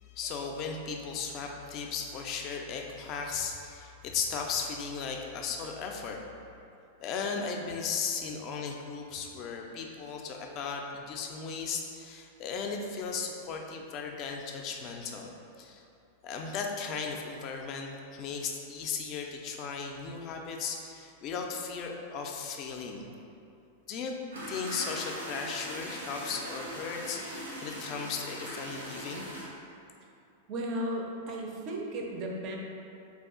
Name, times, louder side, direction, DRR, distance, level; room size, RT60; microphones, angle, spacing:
voice 1, 0.0-6.2 7.0-15.3 15.6-15.8 16.2-23.1 23.9-24.1 24.5-29.3, left 5 dB, 40° left, 2 dB, 0.3 m, -36 dB
sound 1, 24.3-29.4, equal, 75° right, 0.6 m, -40 dB
voice 2, 30.5-32.6, right 1 dB, 40° right, 0 dB, 0.4 m, -35 dB
2.4 x 2.3 x 3.5 m, 2.6 s
figure-of-eight pair, 95°, 0 cm